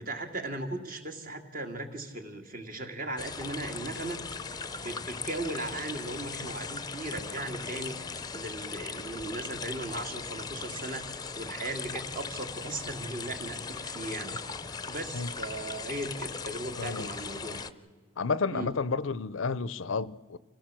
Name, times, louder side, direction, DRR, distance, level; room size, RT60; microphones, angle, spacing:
voice 1, 0.0-14.4 14.9-17.6 18.5-18.8, right 2 dB, 45° right, 2.2 m, -37 dB
sound 1, 3.2-17.7, left 5 dB, 20° left, 0.7 m, -39 dB
voice 2, 16.8-17.1 18.2-20.4, left 4 dB, 80° left, 0.6 m, -31 dB
26.5 x 16.5 x 7.5 m
head